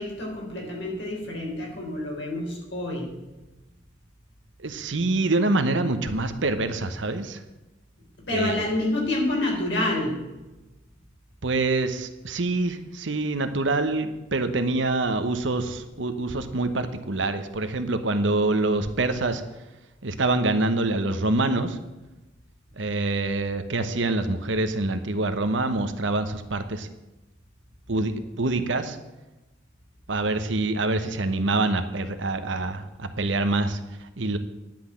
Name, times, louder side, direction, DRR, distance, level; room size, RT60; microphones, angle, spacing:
voice 1, 0.0-3.1 8.3-10.2, left 1 dB, 65° left, -1 dB, 3.8 m, -28 dB
voice 2, 4.6-7.4 8.3-8.7 11.4-19.4 20.0-21.8 22.8-26.9 27.9-29.0 30.1-34.4, right 2 dB, 75° right, 9 dB, 1.0 m, -26 dB
10.5 x 5.9 x 8.7 m, 1.1 s
head